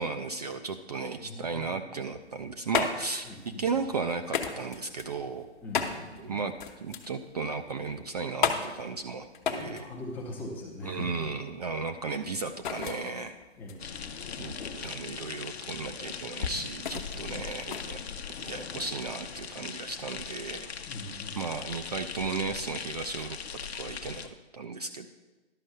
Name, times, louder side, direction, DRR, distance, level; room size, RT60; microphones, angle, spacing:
voice 1, 0.0-5.5 6.2-6.5 6.8-9.9 10.8-13.4 14.4-18.0 18.4-20.7 21.4-25.1, right 4 dB, 35° right, 7 dB, 0.4 m, -35 dB
voice 2, 1.2-1.7 3.3-3.8 5.6-6.4 9.6-11.1 13.6-14.3 17.3-17.5 20.8-21.7, left 1 dB, 5° left, -1 dB, 0.6 m, -42 dB
sound 1, 2.2-18.8, left 6 dB, 45° left, 1.1 m, -36 dB
sound 2, 13.8-24.3, left 6 dB, 65° left, 0.9 m, -40 dB
11.5 x 5.2 x 6.6 m, 1.2 s
figure-of-eight pair, 140°, 34 cm